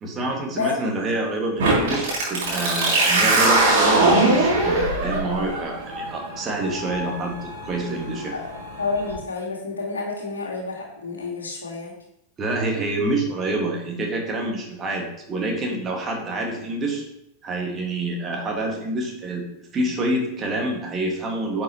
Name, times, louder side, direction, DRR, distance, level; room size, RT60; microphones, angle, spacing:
voice 1, 0.0-8.3 12.4-17.0 17.4-19.4 19.7-21.6, right 2 dB, 25° right, 0 dB, 2.0 m, -27 dB
sound 1, 1.6-9.1, right 2 dB, 55° right, 3.1 m, -22 dB
voice 2, 8.8-11.9, left 4 dB, 70° left, -1 dB, 2.1 m, -29 dB
10.0 x 6.2 x 3.1 m, 0.78 s
figure-of-eight pair, 90°, 0 cm